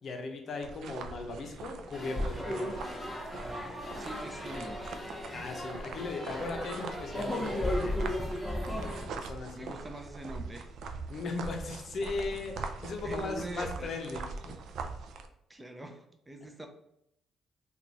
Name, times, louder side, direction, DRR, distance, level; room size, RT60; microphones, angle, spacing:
voice 1, 0.0-2.7 5.3-8.2 9.1-9.7 11.1-14.5, left 3 dB, 55° left, 4 dB, 0.6 m, -38 dB
sound 1, 0.6-15.3, right 4 dB, 75° right, 0.3 m, -43 dB
sound 2, 1.9-9.0, left 1 dB, 5° left, 0.9 m, -35 dB
voice 2, 4.0-4.8 9.5-10.7 13.0-13.9 15.5-16.7, right 1 dB, 15° right, 5 dB, 0.5 m, -43 dB
3.0 x 2.3 x 3.8 m, 0.79 s
cardioid pair, 90°, 0 cm